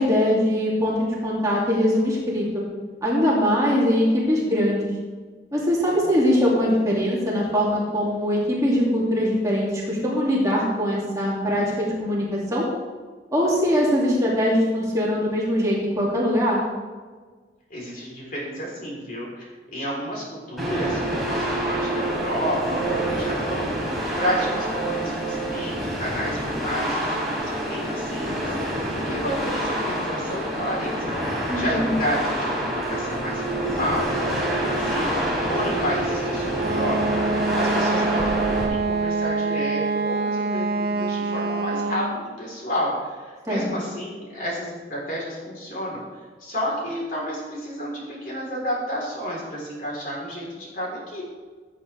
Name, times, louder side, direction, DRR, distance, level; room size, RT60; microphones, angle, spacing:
voice 1, 0.0-2.6 3.0-4.8 5.5-12.7 13.3-16.6 31.5-31.9 43.5-43.6, equal, 20° right, -5 dB, 2.5 m, -22 dB
voice 2, 17.7-46.0 46.4-51.2, equal, 50° left, -4 dB, 3.9 m, -31 dB
sound 1, 20.6-38.6, right 1 dB, ahead, 3.2 m, -27 dB
Wind instrument woodwind instrument, 36.5-42.2, right 3 dB, 60° right, 0.7 m, -25 dB
16.5 x 8.3 x 3.4 m, 1.4 s
head